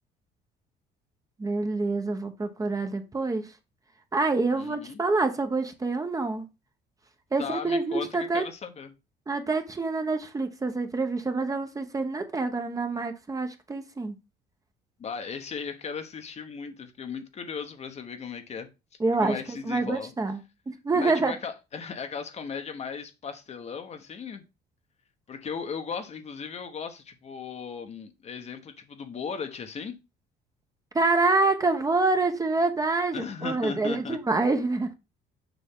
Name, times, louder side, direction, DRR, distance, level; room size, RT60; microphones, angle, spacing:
voice 1, 1.4-3.5 4.1-6.5 7.3-8.4 9.3-14.1 19.0-19.4 19.6-20.4 20.7-21.3 30.9-34.9, right 3 dB, 20° right, 1.0 m, -26 dB
voice 2, 4.5-5.0 7.4-8.9 15.0-18.7 19.2-20.1 20.9-24.4 25.3-30.0 33.1-34.2, left 6 dB, 40° left, 1.0 m, -37 dB
7.0 x 5.3 x 3.7 m
cardioid pair, 110°, 17 cm